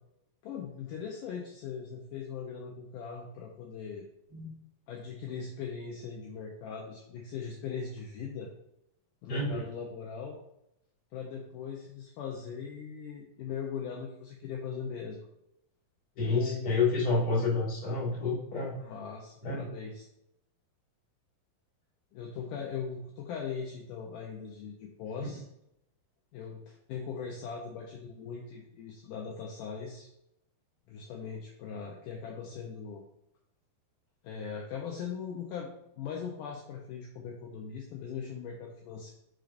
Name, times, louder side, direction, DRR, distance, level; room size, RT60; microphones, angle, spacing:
voice 1, 0.4-4.1 4.9-8.5 9.2-10.4 11.1-15.3 16.2-16.8 18.8-20.0 22.1-25.4 26.3-30.1 30.9-33.0 34.2-35.7 36.0-39.1, left 6 dB, 75° left, -1 dB, 2.1 m, -40 dB
voice 2, 9.3-9.6 16.2-18.8 19.4-19.6 25.2-25.3, left 3 dB, 30° left, -6 dB, 2.2 m, -29 dB
10.0 x 4.6 x 2.6 m, 0.81 s
omnidirectional pair, 4.2 m